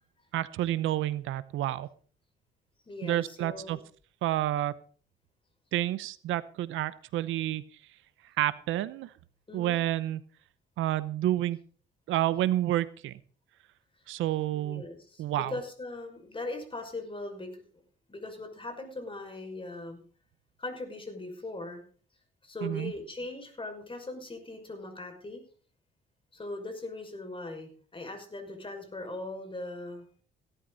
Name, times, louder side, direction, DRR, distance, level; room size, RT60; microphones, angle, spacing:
voice 1, 0.3-1.9 3.0-3.8 4.2-4.8 5.7-7.6 8.4-9.1 9.5-10.2 10.8-11.6 12.1-13.2 14.1-14.8 15.2-15.5 22.6-22.9, right 14 dB, 85° right, 16 dB, 0.9 m, -29 dB
voice 2, 2.9-3.8 9.5-9.8 14.5-17.5 18.1-20.0 20.6-21.8 22.4-25.4 26.3-30.0, left 2 dB, 25° left, 5 dB, 5.7 m, -40 dB
17.5 x 12.0 x 4.1 m, 0.42 s
cardioid pair, 90°, 20 cm